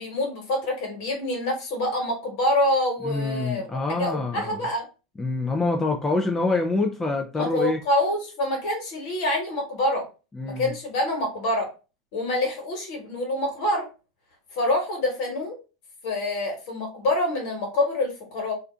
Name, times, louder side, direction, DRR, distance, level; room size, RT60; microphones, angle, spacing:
voice 1, 0.0-4.8 7.3-10.0 10.4-11.7 12.1-13.9 14.5-15.6 16.0-18.5, left 1 dB, 60° left, 1.3 m, -26 dB
voice 2, 3.0-4.7 5.2-7.8 10.3-10.7, left 3 dB, 15° left, 0.4 m, -26 dB
2.5 x 2.2 x 2.4 m
hypercardioid pair, 90°, 2 cm